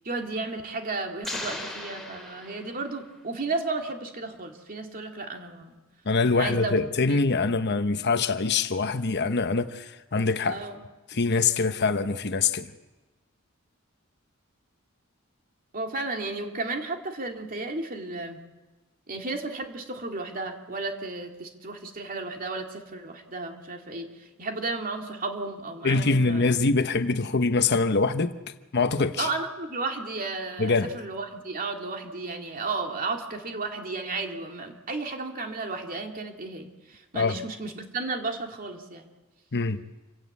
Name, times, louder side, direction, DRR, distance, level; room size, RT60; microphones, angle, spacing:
voice 1, 0.0-5.8 6.3-6.7 7.1-7.3 10.5-10.8 15.7-18.4 19.1-24.1 24.4-26.5 29.2-39.1, right 3 dB, 40° right, 2.6 m, -33 dB
sound 1, 1.2-3.1, left 1 dB, ahead, 3.8 m, -37 dB
voice 2, 6.1-10.6 11.1-12.7 25.8-28.3 28.7-29.3 30.6-30.9 37.1-37.4 39.5-39.8, left 4 dB, 50° left, 1.0 m, -24 dB
27.5 x 17.0 x 8.4 m
head